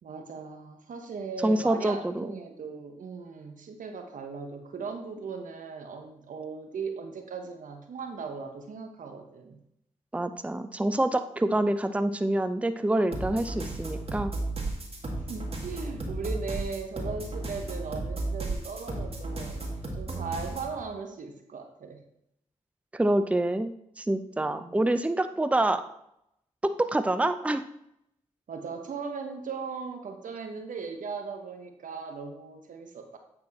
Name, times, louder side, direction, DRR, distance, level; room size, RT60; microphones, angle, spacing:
voice 1, 0.0-9.6 11.4-11.5 15.3-19.6 19.9-22.0 24.4-24.8 28.5-33.2, right 5 dB, 70° right, 5 dB, 1.1 m, -38 dB
voice 2, 1.4-2.4 10.1-14.3 22.9-25.8 26.6-27.6, right 1 dB, 10° right, 10 dB, 0.6 m, -26 dB
sound 1, 13.1-20.7, right 2 dB, 45° right, 2.0 m, -34 dB
8.7 x 4.4 x 4.2 m, 0.78 s
supercardioid pair, 40°, 14 cm